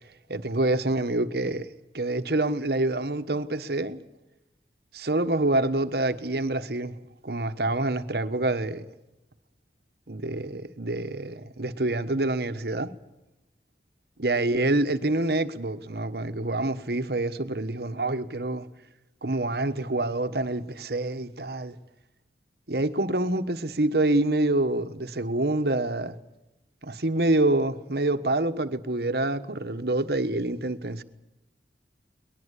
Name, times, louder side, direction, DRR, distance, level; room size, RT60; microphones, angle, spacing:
voice 1, 0.3-1.7 1.9-4.0 4.9-6.9 7.2-8.9 10.1-12.9 14.2-18.7 19.2-21.8 22.7-26.1 26.8-31.0, right 2 dB, 60° right, 1.3 m, -26 dB
22.5 x 20.5 x 8.4 m
head